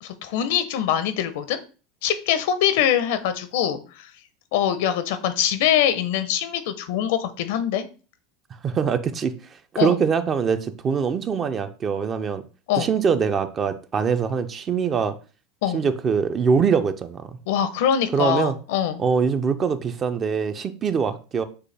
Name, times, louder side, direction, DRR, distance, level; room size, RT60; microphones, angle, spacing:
voice 1, 0.0-1.6 2.0-4.1 4.5-7.9 9.8-10.0 12.7-12.9 15.6-15.8 17.5-19.0, left 9 dB, 75° left, 0.6 m, -23 dB
voice 2, 8.6-9.3 9.7-12.4 12.8-15.1 15.7-17.2 18.1-18.5 19.0-21.4, right 6 dB, 30° right, 0.4 m, -23 dB
6.5 x 2.3 x 3.3 m
supercardioid pair, 130°, 0 cm